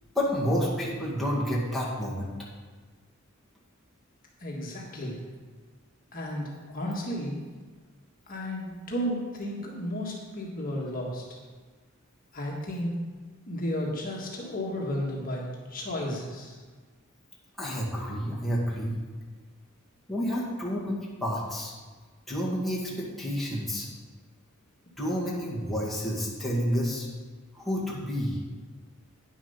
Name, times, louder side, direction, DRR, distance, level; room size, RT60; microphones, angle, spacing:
voice 1, 0.2-2.3 17.6-19.0 20.1-21.7 22.3-23.9 25.0-27.1 27.5-28.4, equal, ahead, -7 dB, 2.1 m, -29 dB
voice 2, 4.4-5.2 6.1-7.4 8.3-11.4 12.3-13.1 13.5-16.6, equal, 45° left, -2 dB, 1.6 m, -33 dB
9.7 x 7.2 x 5.6 m, 1.4 s
head